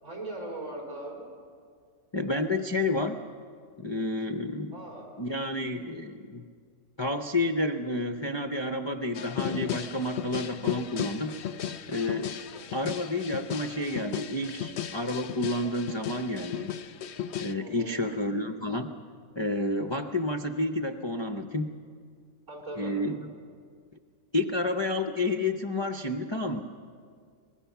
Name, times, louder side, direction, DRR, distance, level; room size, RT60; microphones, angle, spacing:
voice 1, 0.0-1.3 4.7-5.1 12.5-12.8 17.6-18.0 22.5-22.9, right 1 dB, 50° right, -2 dB, 4.7 m, -39 dB
voice 2, 2.1-3.2 3.8-4.8 5.2-6.4 7.0-11.4 11.9-12.4 12.7-16.7 17.4-18.9 19.4-21.7 22.8-23.2 24.3-26.6, left 2 dB, 35° left, 6 dB, 0.4 m, -30 dB
sound 1, 9.1-17.5, left 9 dB, 60° left, 0.8 m, -35 dB
24.0 x 21.0 x 5.8 m, 2.1 s
omnidirectional pair, 1.6 m